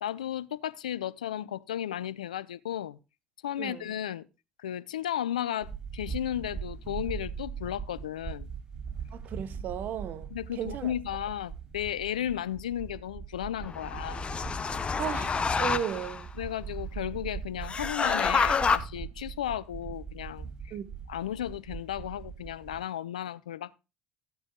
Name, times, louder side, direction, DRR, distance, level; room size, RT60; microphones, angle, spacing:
voice 1, 0.0-3.0 3.4-4.3 4.6-8.5 10.3-14.2 16.4-20.7 21.1-23.8, left 11 dB, 80° left, 0.5 m, -34 dB
voice 2, 3.6-3.9 9.1-10.9 15.0-16.3 20.7-20.9, right 9 dB, 50° right, 1.0 m, -35 dB
sound 1, 5.6-22.8, right 6 dB, 25° right, 7.5 m, -41 dB
sound 2, 13.6-16.2 17.6-18.8, left 5 dB, 30° left, 0.9 m, -28 dB
14.0 x 9.7 x 2.3 m
figure-of-eight pair, 65°, 4 cm